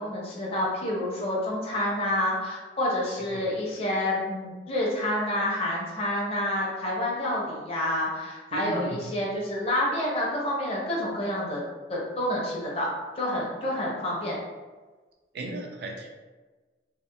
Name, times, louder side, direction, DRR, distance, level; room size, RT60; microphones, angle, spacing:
voice 1, 0.0-11.6 11.9-12.9 13.2-14.4, left 1 dB, 30° left, -4 dB, 0.6 m, -28 dB
voice 2, 8.5-9.1 15.3-16.1, right 1 dB, 60° right, 1 dB, 0.4 m, -35 dB
2.8 x 2.0 x 2.2 m, 1.3 s
head